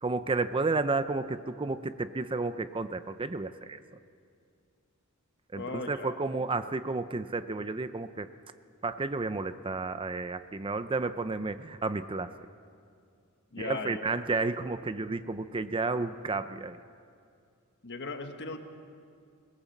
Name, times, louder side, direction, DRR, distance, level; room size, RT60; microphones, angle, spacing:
voice 1, 0.0-3.8 5.5-8.3 8.8-12.3 13.6-16.8, right 3 dB, 25° right, 11 dB, 0.6 m, -32 dB
voice 2, 5.5-6.2 13.5-14.0 17.8-18.6, left 3 dB, 55° left, 6 dB, 1.6 m, -37 dB
22.5 x 20.5 x 7.3 m, 2.3 s
head